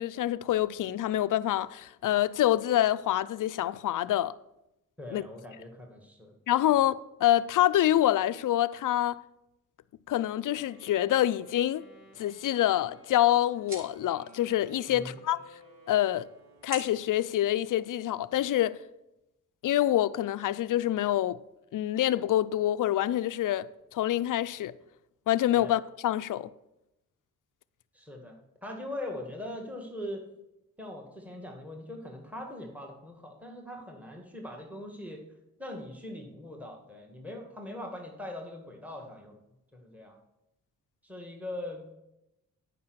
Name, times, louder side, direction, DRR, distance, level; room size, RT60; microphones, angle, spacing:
voice 1, 0.0-4.3 5.1-5.2 6.5-9.2 10.1-11.9 12.2-15.4 15.9-16.3 16.6-18.8 19.6-21.4 21.7-23.7 23.9-24.8 25.3-26.5, left 13 dB, 60° left, 0.5 m, -26 dB
voice 2, 5.0-6.3 6.7-6.8 14.9-15.2 25.6-25.8 27.9-30.2 30.8-35.2 35.6-39.4 39.7-40.2 41.0-41.9, left 1 dB, 5° right, 1.9 m, -41 dB
Wind instrument woodwind instrument, 10.5-17.0, equal, 70° right, 3.3 m, -56 dB
sound 1, 12.4-18.4, right 1 dB, 50° right, 4.2 m, -50 dB
9.4 x 5.4 x 6.2 m
supercardioid pair, 45°, 36 cm